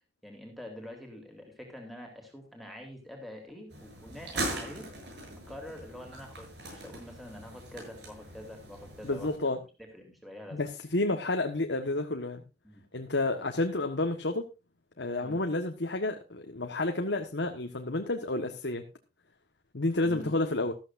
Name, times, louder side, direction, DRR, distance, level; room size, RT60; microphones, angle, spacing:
voice 1, 0.2-4.9 5.5-9.5 9.9-10.6 12.6-12.8 15.2-15.4 20.0-20.3, left 1 dB, ahead, 2 dB, 3.6 m, -46 dB
sound 1, 3.7-9.4, right 1 dB, 80° right, 7.6 m, -40 dB
voice 2, 9.0-9.6 10.5-12.4 12.9-14.5 15.0-18.8 19.7-20.7, left 2 dB, 85° left, 4 dB, 1.5 m, -30 dB
14.5 x 14.0 x 2.6 m, 0.28 s
head